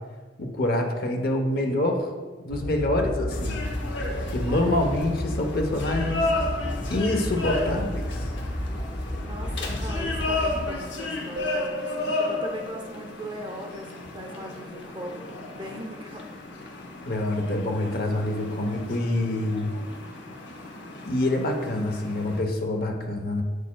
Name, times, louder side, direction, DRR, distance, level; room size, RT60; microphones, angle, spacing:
voice 1, 0.4-2.1 2.5-3.6 4.3-6.3 6.9-8.3 17.0-19.7 21.0-23.4, left 1 dB, 60° left, 3 dB, 0.8 m, -26 dB
sound 1, 2.5-10.7, left 1 dB, 10° left, 0.4 m, -32 dB
sound 2, 3.3-22.4, left 2 dB, 85° left, 0.9 m, -33 dB
voice 2, 4.5-5.0 9.2-16.3 17.0-17.1, equal, 25° right, 2 dB, 0.7 m, -39 dB
sound 3, 11.4-13.6, right 1 dB, 65° right, 0.5 m, -37 dB
8.3 x 6.5 x 2.3 m, 1.3 s
head